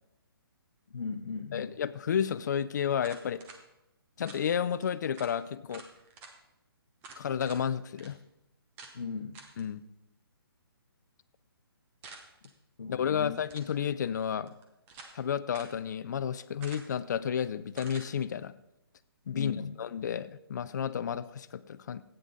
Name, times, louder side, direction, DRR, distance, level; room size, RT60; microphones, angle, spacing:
voice 1, 0.9-1.8 8.9-9.4 12.8-13.4 19.3-19.8, left 5 dB, 85° left, 3 dB, 0.8 m, -37 dB
voice 2, 1.5-3.4 4.2-5.8 7.2-8.2 9.6-9.8 12.9-14.5 15.1-18.5 19.3-22.0, left 8 dB, 45° left, 15 dB, 0.5 m, -31 dB
sound 1, 3.0-3.6 4.3-4.4 4.8-4.9 5.2-5.4 5.7-6.3 7.0-7.6 8.0-8.1 8.8-9.0 9.3-9.6 12.0-12.5 13.4-13.8 14.5-15.2 15.5-15.8 16.6-17.0 17.7-18.1, right 4 dB, 15° right, 1.0 m, -49 dB
13.5 x 9.1 x 4.0 m, 0.88 s
hypercardioid pair, 165°, 13 cm